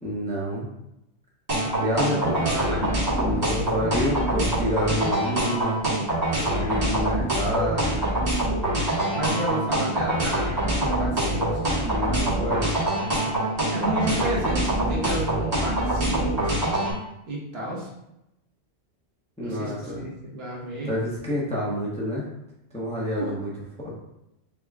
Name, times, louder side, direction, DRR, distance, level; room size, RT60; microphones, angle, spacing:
voice 1, 0.0-0.7 1.8-2.4 2.7-2.9 3.1-5.8 6.5-8.1 11.8-12.7 19.4-20.1 20.8-22.3 22.7-23.5 23.8-23.9, equal, 5° left, -6 dB, 0.6 m, -28 dB
sound 1, 1.5-16.9, right 1 dB, 35° right, 1.1 m, -24 dB
voice 2, 2.0-2.9 9.1-11.6 13.7-16.6 17.3-17.9 19.4-20.9 23.2-23.3, right 1 dB, 70° right, -4 dB, 1.2 m, -31 dB
3.5 x 2.2 x 3.4 m, 0.86 s
omnidirectional pair, 1.1 m